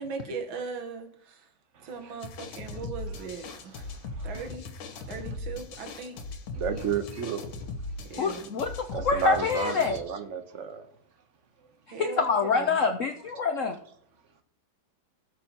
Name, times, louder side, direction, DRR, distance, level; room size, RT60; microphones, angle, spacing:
voice 1, 0.0-1.4 1.8-3.7 4.2-4.7 5.1-6.2 8.1-8.5 11.9-12.8, right 5 dB, 85° right, 1.9 m, -39 dB
voice 2, 1.8-2.2 3.5-4.3 6.5-7.5 8.9-10.8, right 5 dB, 50° right, 1.0 m, -32 dB
sound 1, 2.2-10.0, left 2 dB, 90° left, 1.7 m, -39 dB
voice 3, 8.2-10.0 12.0-13.7, left 5 dB, 70° left, 0.7 m, -26 dB
17.5 x 7.0 x 2.9 m
omnidirectional pair, 2.1 m